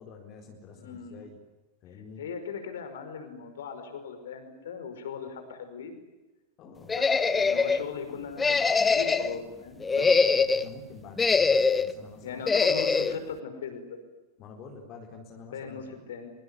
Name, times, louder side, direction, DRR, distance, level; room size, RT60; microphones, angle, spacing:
voice 1, 0.0-1.4 1.8-2.2 6.6-7.0 9.9-12.4 14.4-16.1, left 5 dB, 35° left, 2 dB, 4.3 m, -47 dB
voice 2, 0.7-1.2 2.2-5.9 6.9-7.1 7.3-10.0 12.2-14.0 15.5-15.8 16.1-16.3, left 6 dB, 60° left, 8 dB, 5.3 m, -38 dB
sound 1, 6.9-7.8 8.4-9.4 9.8-10.7 11.2-11.9 12.5-13.1, left 4 dB, 15° left, 1.1 m, -23 dB
24.5 x 24.5 x 9.9 m, 1.1 s
figure-of-eight pair, 90°, 0 cm